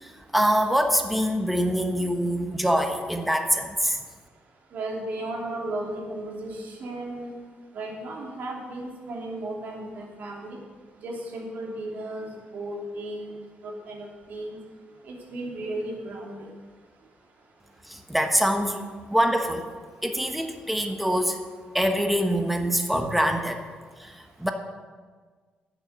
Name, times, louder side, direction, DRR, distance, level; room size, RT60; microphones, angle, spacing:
voice 1, 0.0-4.0 17.9-18.8 19.1-19.7 20.0-21.4 21.7-23.6 24.0-24.5, equal, ahead, 5 dB, 1.0 m, -24 dB
voice 2, 4.7-7.4 7.7-10.6 11.0-14.6 15.0-16.5, right 1 dB, 55° right, 0 dB, 2.8 m, -35 dB
11.0 x 9.1 x 7.3 m, 1.5 s
cardioid pair, 150°, 3 cm